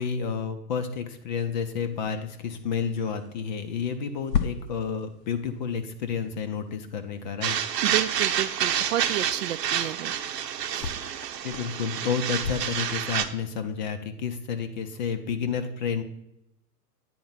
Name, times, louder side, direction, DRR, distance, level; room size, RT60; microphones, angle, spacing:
voice 1, 0.0-7.6 11.4-16.0, left 6 dB, 30° left, 8 dB, 0.5 m, -30 dB
sound 1, 1.7-13.8, left 7 dB, 85° left, 0.9 m, -39 dB
sound 2, 7.4-13.3, right 9 dB, 85° right, 0.9 m, -28 dB
voice 2, 7.8-10.1 10.7-10.9, right 13 dB, 55° right, 14 dB, 0.5 m, -31 dB
9.4 x 4.3 x 5.6 m, 0.84 s
hypercardioid pair, 140°, 48 cm